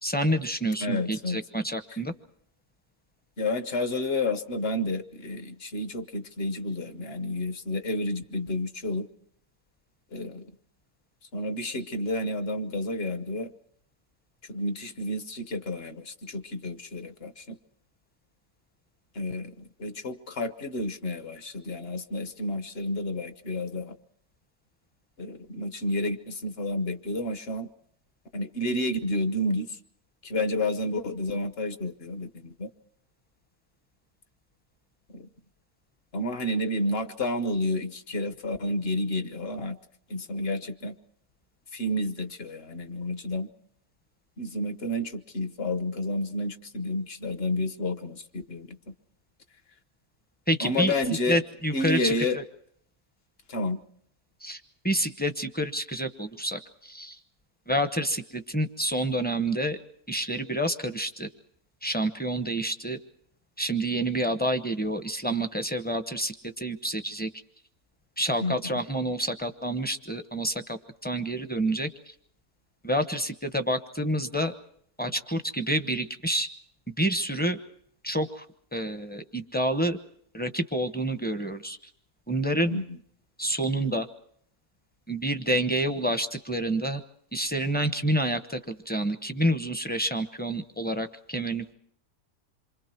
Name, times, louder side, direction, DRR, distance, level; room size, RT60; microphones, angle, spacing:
voice 1, 0.0-2.1 50.5-50.9 51.3-52.4 54.4-54.6 54.8-57.2 57.7-59.8 60.1-61.3 61.8-63.0 63.6-67.3 68.2-71.9 72.8-74.5 75.0-76.5 77.0-77.6 78.0-78.4 78.7-80.0 80.3-81.8 82.3-82.8 83.4-84.1 85.1-87.0 87.3-91.7, right 1 dB, 10° left, 9 dB, 0.7 m, -28 dB
voice 2, 0.8-1.4 1.9-2.0 3.4-9.1 10.1-10.5 11.3-13.5 14.5-17.6 19.1-23.9 25.2-27.7 28.3-29.8 30.2-32.7 35.1-35.3 36.1-39.8 40.1-40.9 41.7-43.5 44.4-48.8 50.6-51.4 51.7-52.4 53.5-53.8 68.4-68.8 82.7-83.0, left 1 dB, 45° left, 10 dB, 1.2 m, -30 dB
27.5 x 24.5 x 4.6 m, 0.65 s
omnidirectional pair, 1.6 m